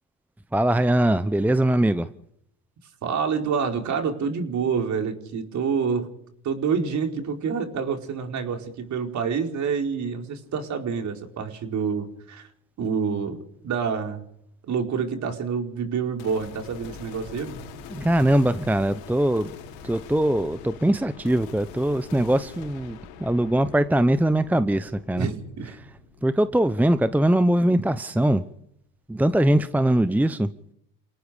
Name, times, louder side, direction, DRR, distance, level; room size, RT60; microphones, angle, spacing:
voice 1, 0.5-2.1 17.9-19.5 19.8-25.3 26.2-28.4 29.1-30.5, right 1 dB, 5° right, 12 dB, 1.0 m, -21 dB
voice 2, 3.0-6.1 6.4-12.5 12.8-13.4 13.6-14.2 14.7-17.6 25.2-25.8, right 6 dB, 45° right, 4 dB, 4.8 m, -27 dB
sound 1, 16.2-27.5, left 6 dB, 80° left, 4.8 m, -44 dB
29.5 x 18.0 x 5.2 m, 0.73 s
supercardioid pair, 90°, 39 cm